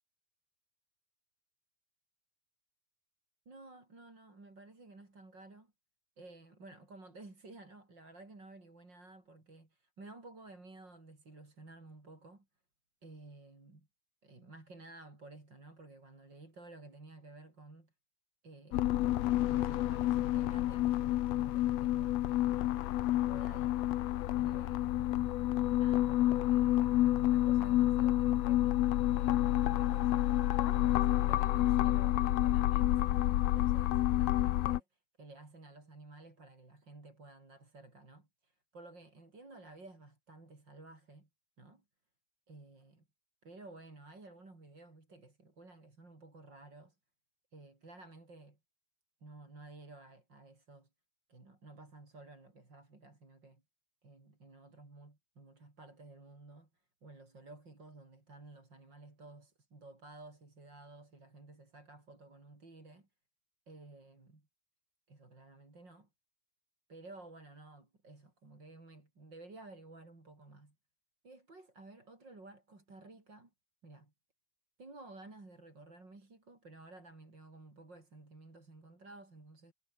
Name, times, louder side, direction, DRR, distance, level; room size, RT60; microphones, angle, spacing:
voice 1, 3.5-5.7 6.2-12.5 13.0-13.9 14.2-17.9 18.4-22.2 22.5-23.8 24.4-25.3 25.8-30.3 30.8-41.3 41.6-41.8 42.5-43.1 43.4-47.0 47.5-48.6 49.2-50.9 51.3-53.6 54.0-56.7 57.0-63.1 63.7-64.5 65.1-66.1 66.9-70.7 71.2-73.5 73.8-74.1 74.8-79.7, right 2 dB, 30° right, 6.2 m, -54 dB
sound 1, 18.7-34.8, left 14 dB, 85° left, 1.4 m, -29 dB
omnidirectional pair, 4.2 m